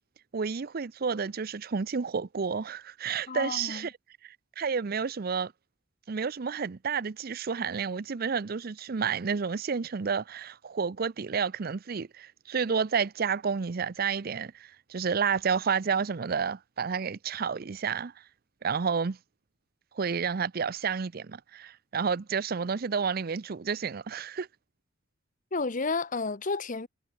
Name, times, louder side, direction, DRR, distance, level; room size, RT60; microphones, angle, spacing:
voice 1, 0.3-3.9 4.2-5.5 6.1-18.1 18.6-19.2 19.9-24.5, right 6 dB, 50° right, 0.6 m, -30 dB
voice 2, 3.3-3.9 25.5-26.9, left 3 dB, 45° left, 1.0 m, -31 dB
head